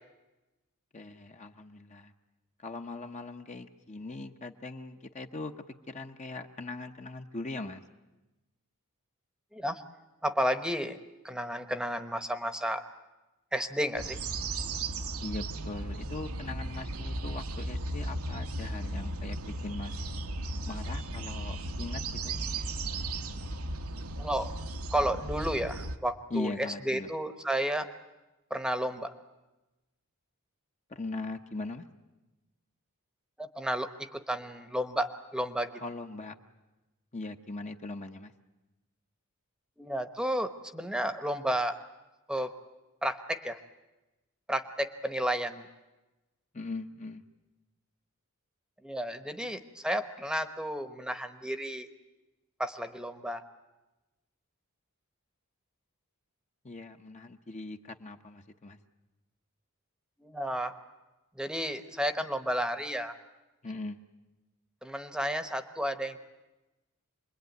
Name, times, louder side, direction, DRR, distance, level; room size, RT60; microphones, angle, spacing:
voice 1, 0.9-2.1 2.6-7.8 15.2-19.4 19.6-20.0 20.7-22.4 26.3-27.1 30.9-31.9 35.8-36.4 37.1-38.3 46.5-47.2 56.6-58.8 63.6-64.0, left 2 dB, 30° left, 5 dB, 1.0 m, -40 dB
voice 2, 10.2-11.0 11.2-12.8 13.5-14.2 24.2-24.5 24.9-27.9 28.5-29.1 33.4-35.8 39.8-41.8 42.3-42.5 43.0-43.6 44.5-45.7 48.8-51.9 52.6-53.4 60.2-60.7 61.4-63.1 64.8-66.2, equal, 5° right, 9 dB, 1.1 m, -32 dB
sound 1, 14.0-26.0, right 2 dB, 75° right, 1.3 m, -36 dB
27.0 x 21.5 x 9.4 m, 1.1 s
head